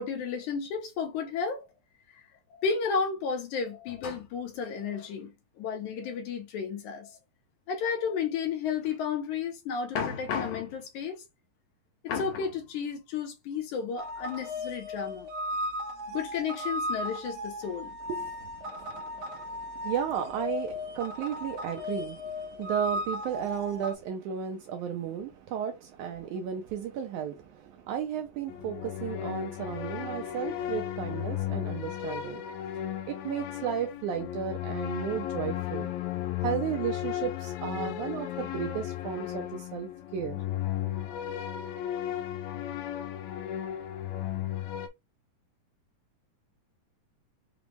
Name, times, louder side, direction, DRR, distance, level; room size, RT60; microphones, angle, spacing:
voice 1, 0.0-1.6 2.1-2.2 2.5-7.2 7.7-11.2 12.0-15.3 16.1-17.9, left 6 dB, 70° left, 2.1 m, -32 dB
sound 1, 14.0-23.9, left 1 dB, 60° right, 1.9 m, -36 dB
voice 2, 18.1-32.5 33.1-35.9 36.4-40.4, right 8 dB, 75° right, 1.8 m, -34 dB
sound 2, 28.5-44.9, left 12 dB, 90° left, 2.6 m, -35 dB
6.0 x 2.2 x 3.4 m
omnidirectional pair, 4.0 m